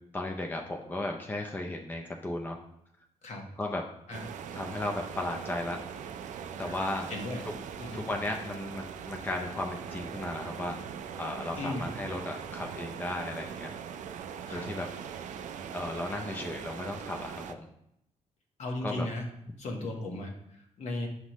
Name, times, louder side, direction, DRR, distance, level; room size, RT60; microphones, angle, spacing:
voice 1, 0.1-2.6 3.6-3.8 4.5-5.8 6.6-7.1 7.9-10.7 11.2-13.7 14.5-14.9 15.7-17.7 18.8-19.1, left 1 dB, 15° left, 2 dB, 0.5 m, -35 dB
sound 1, 4.1-17.5, right 7 dB, 80° right, 0.4 m, -41 dB
voice 2, 7.1-7.4 7.8-8.1 11.6-11.9 14.5-14.7 18.6-19.3 19.6-21.1, left 2 dB, 65° left, 1 dB, 1.3 m, -36 dB
6.4 x 5.7 x 3.1 m, 0.76 s
wide cardioid pair, 140°, 13 cm